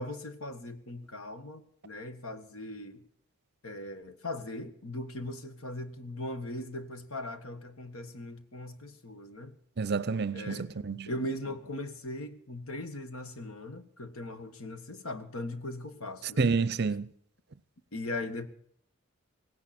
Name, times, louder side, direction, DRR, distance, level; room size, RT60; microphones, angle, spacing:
voice 1, 0.0-3.0 3.6-9.5 10.3-10.6 11.1-16.5 17.9-18.5, left 1 dB, 70° left, 1.7 m, -39 dB
voice 2, 9.8-11.1 16.4-17.1, right 4 dB, 45° right, 0.6 m, -29 dB
18.0 x 17.0 x 4.3 m
head